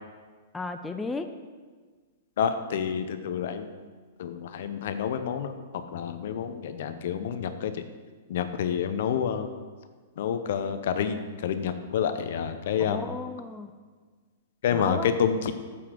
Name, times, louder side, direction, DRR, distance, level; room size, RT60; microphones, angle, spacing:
voice 1, 0.5-1.3 12.8-13.7 14.7-15.1, left 3 dB, 10° left, 7 dB, 0.5 m, -34 dB
voice 2, 2.4-3.7 4.2-7.8 8.3-9.6 10.2-13.1 14.6-15.5, left 7 dB, 60° left, 9 dB, 0.7 m, -28 dB
6.9 x 5.7 x 6.5 m, 1.5 s
figure-of-eight pair, 110°, 0 cm